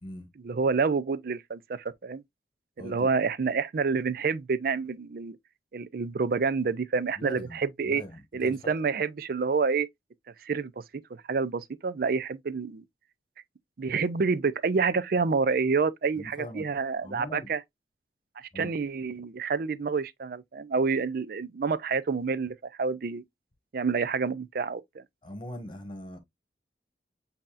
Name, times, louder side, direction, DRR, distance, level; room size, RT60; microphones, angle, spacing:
voice 1, 0.4-2.2 2.8-5.4 5.7-8.0 8.3-9.9 10.4-10.7 11.1-12.8 13.8-17.6 18.4-23.2 23.7-24.8, right 5 dB, 55° right, 0.4 m, -28 dB
voice 2, 2.8-3.1 7.2-8.8 16.2-16.7 17.0-17.5 18.5-18.7 25.2-26.2, equal, 25° left, 1.4 m, -41 dB
7.5 x 2.8 x 2.4 m
head